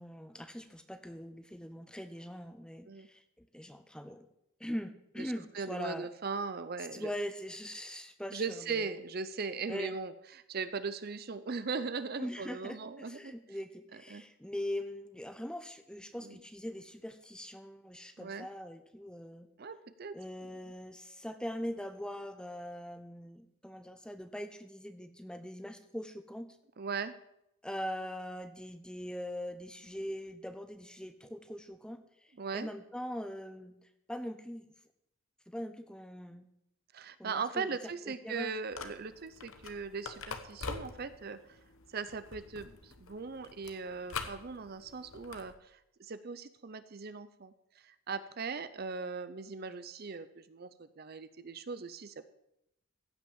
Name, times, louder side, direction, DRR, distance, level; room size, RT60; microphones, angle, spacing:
voice 1, 0.0-4.3 4.6-6.1 6.9-8.9 9.7-10.0 12.2-19.5 20.1-26.5 27.6-33.8 34.1-34.7 35.5-36.5 37.2-37.8 38.1-38.5, equal, 5° left, 9 dB, 0.7 m, -42 dB
voice 2, 5.5-7.1 8.3-13.3 13.9-14.2 16.2-16.4 18.2-18.5 19.6-20.2 26.8-27.1 32.4-32.7 36.9-41.6 41.9-52.2, right 4 dB, 45° right, 13 dB, 0.6 m, -39 dB
sound 1, 38.7-45.5, left 4 dB, 75° left, 1.1 m, -45 dB
15.5 x 5.9 x 7.1 m, 0.82 s
head